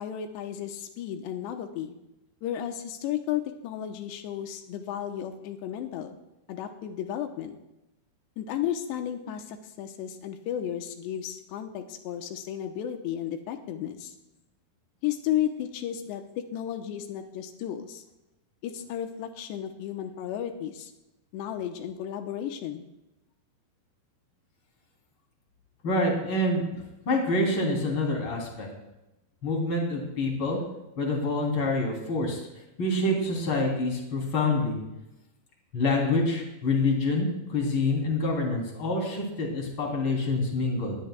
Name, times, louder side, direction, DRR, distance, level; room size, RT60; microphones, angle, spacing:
voice 1, 0.0-1.9 2.4-6.2 6.5-7.6 8.4-14.1 15.0-18.0 18.6-20.9 21.3-22.9, left 10 dB, 90° left, 5 dB, 3.1 m, -33 dB
voice 2, 25.8-26.7 27.1-28.7 29.4-30.6 31.0-32.4 32.8-34.8 35.7-41.0, left 2 dB, 30° left, -1 dB, 3.6 m, -26 dB
20.5 x 18.5 x 2.3 m, 0.93 s
omnidirectional pair, 4.9 m